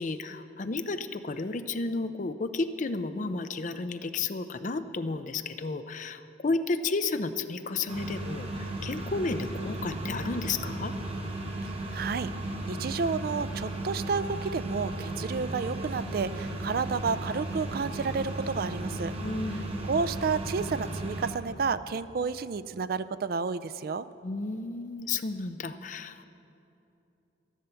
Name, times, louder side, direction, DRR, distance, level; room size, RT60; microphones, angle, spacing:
voice 1, 0.0-10.9 19.2-19.9 24.2-26.2, left 3 dB, 45° left, 10 dB, 0.5 m, -32 dB
sound 1, 7.9-21.3, right 1 dB, 30° right, 1.4 m, -35 dB
voice 2, 11.9-12.3 12.7-19.1 19.5-24.1, right 5 dB, 55° right, 15 dB, 0.4 m, -31 dB
13.0 x 11.0 x 6.9 m, 2.8 s
head